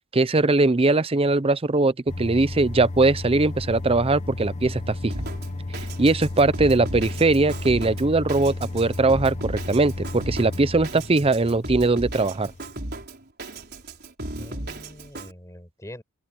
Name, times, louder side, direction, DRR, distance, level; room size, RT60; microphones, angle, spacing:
voice 1, 0.1-5.1 6.0-12.5, right 3 dB, 25° right, 0.6 m, -21 dB
sound 1, 2.1-12.7, left 2 dB, 30° left, 1.0 m, -34 dB
Drum kit, 5.1-15.3, right 1 dB, 45° right, 4.7 m, -36 dB
voice 2, 14.3-16.0, left 1 dB, 15° left, 6.1 m, -43 dB
open air
head